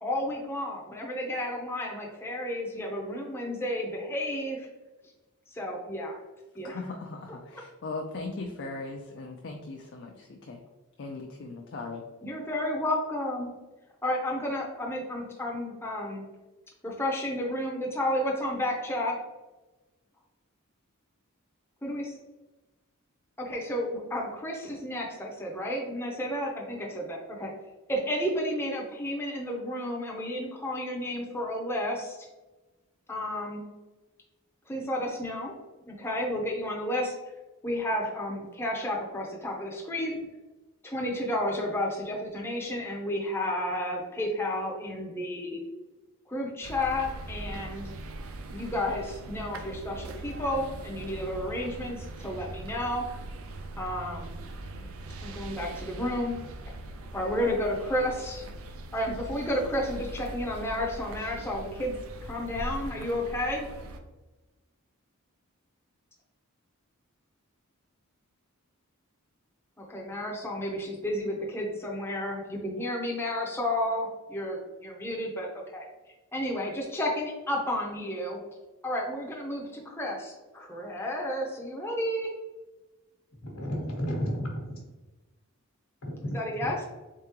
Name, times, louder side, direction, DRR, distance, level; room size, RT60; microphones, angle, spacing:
voice 1, 0.0-4.7 5.5-6.2 6.5-6.8 12.2-13.5 14.0-16.3 16.8-19.1 21.8-22.0 23.4-27.5 27.9-32.2 33.1-33.7 34.7-35.5 35.9-37.2 37.6-40.2 40.8-45.6 46.3-47.9 48.5-53.0 53.8-54.3 55.2-56.3 57.1-58.4 58.9-61.9 62.2-63.7 69.8-75.5 75.7-75.9 76.3-78.4 78.8-82.3 86.2-86.8, left 1 dB, 10° left, -2 dB, 0.6 m, -32 dB
voice 2, 6.6-10.6 11.0-12.0, left 3 dB, 55° left, 2 dB, 0.4 m, -38 dB
sound 1, 46.6-64.0, right 2 dB, 70° right, 0.4 m, -41 dB
voice 3, 83.4-84.8 86.0-86.7, equal, 80° left, 0 dB, 1.1 m, -33 dB
3.7 x 3.6 x 2.9 m, 1.1 s
head